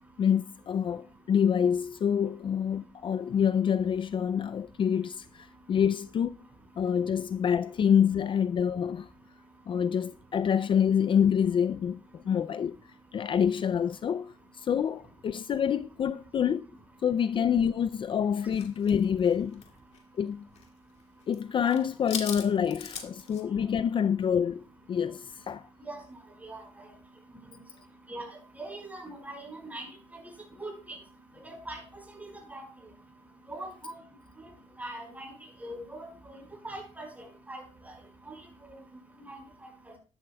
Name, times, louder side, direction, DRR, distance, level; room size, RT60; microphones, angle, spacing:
voice 1, 0.2-6.3 6.8-9.1 9.7-12.8 13.1-16.7 17.0-19.6 20.2-20.5 21.3-25.7, left 8 dB, 45° left, 0.4 m, -27 dB
sound 1, 18.5-20.7 21.0-21.4 21.7-23.4, left 6 dB, 65° left, 2.1 m, -40 dB
voice 2, 26.4-26.9 28.1-29.9 30.6-31.0 31.4-31.8 32.1-32.6 33.5-34.0 34.4-34.5 34.8-35.3 35.6-37.9 38.3-38.4 38.7-38.8 39.2-39.4, right 1 dB, 15° right, 5.0 m, -42 dB
12.5 x 12.0 x 2.3 m
cardioid pair, 100°, 12 cm